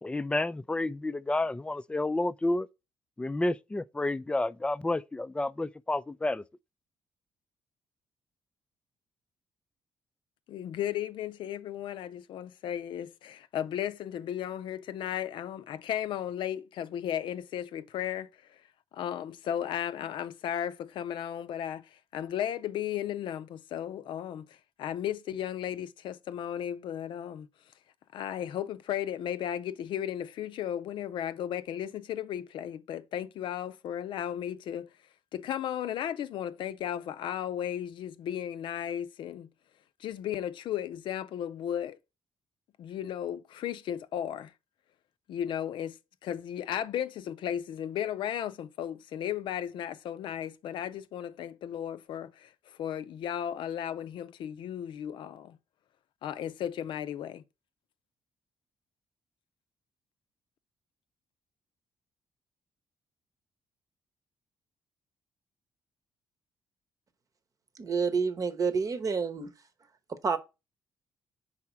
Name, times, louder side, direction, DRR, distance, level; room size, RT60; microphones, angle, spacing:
voice 1, 0.0-2.7 3.2-6.4, left 2 dB, 10° left, 0.4 m, -30 dB
voice 2, 10.5-18.6 18.9-27.5 28.1-34.9 35.3-39.5 40.0-42.0 42.8-44.5 45.3-55.6 56.2-57.4, left 10 dB, 75° left, 0.5 m, -35 dB
voice 3, 67.7-69.6 70.1-70.4, right 5 dB, 45° right, 0.9 m, -29 dB
4.9 x 4.1 x 5.7 m
cardioid pair, 80°, 8 cm